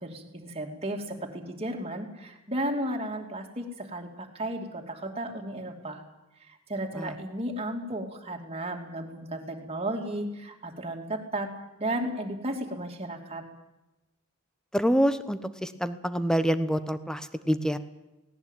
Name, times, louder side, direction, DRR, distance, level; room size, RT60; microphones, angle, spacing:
voice 1, 0.0-6.0 6.7-11.5 11.8-13.4, right 1 dB, 30° right, 2 dB, 2.9 m, -34 dB
voice 2, 14.7-17.8, equal, 5° left, 12 dB, 1.0 m, -26 dB
18.0 x 17.5 x 9.2 m, 0.99 s
head